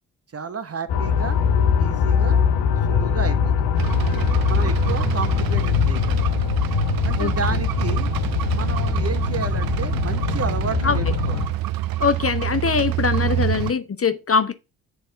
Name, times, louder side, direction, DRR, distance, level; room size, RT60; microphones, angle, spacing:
voice 1, 0.3-1.4 1.8-2.4 2.9-3.8 4.4-6.3 7.0-8.1 8.5-11.5, right 5 dB, 35° right, 1.2 m, -32 dB
sound 1, 0.9-11.5, left 7 dB, 80° left, 1.1 m, -22 dB
sound 2, 3.8-13.7, right 14 dB, 55° right, 0.5 m, -27 dB
voice 2, 12.0-14.5, left 6 dB, 30° left, 0.7 m, -22 dB
7.9 x 3.4 x 5.1 m
hypercardioid pair, 50°, 44 cm